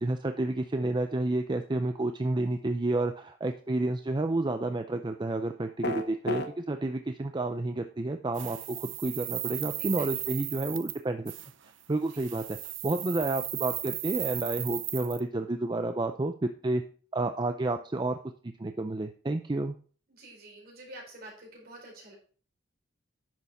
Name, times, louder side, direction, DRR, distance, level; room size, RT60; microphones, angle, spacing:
voice 1, 0.0-11.3 11.9-12.6 12.8-16.8 17.1-18.2 18.6-19.7, right 2 dB, 25° right, 7 dB, 0.5 m, -30 dB
sound 1, 5.8-6.5, left 1 dB, 60° left, 0.9 m, -31 dB
sound 2, 8.4-11.0 11.3-11.5 12.1-15.2, right 15 dB, 75° right, 0.7 m, -36 dB
voice 2, 20.1-22.1, right 1 dB, 55° right, -1 dB, 4.8 m, -48 dB
10.5 x 6.7 x 4.2 m, 0.41 s
head